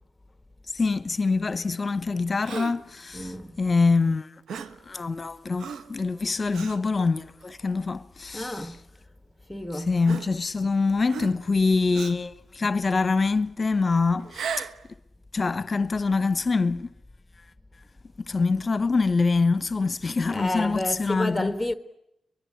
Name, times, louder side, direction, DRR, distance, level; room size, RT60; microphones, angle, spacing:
voice 1, 0.7-4.3 4.8-8.7 9.7-14.7 15.3-16.9 18.2-21.5, left 4 dB, 40° left, 1.0 m, -25 dB
Gasp, 2.4-2.9 4.5-4.8 5.6-6.0 6.5-6.8 7.5-7.7 8.7-8.8 10.0-10.7 11.1-11.5 11.9-12.3 14.2-14.8, right 6 dB, 75° right, 1.1 m, -36 dB
voice 2, 3.1-3.6 8.3-8.8 9.5-9.9 20.3-21.7, left 1 dB, 5° left, 1.6 m, -30 dB
23.0 x 22.0 x 9.8 m
supercardioid pair, 45°, 0 cm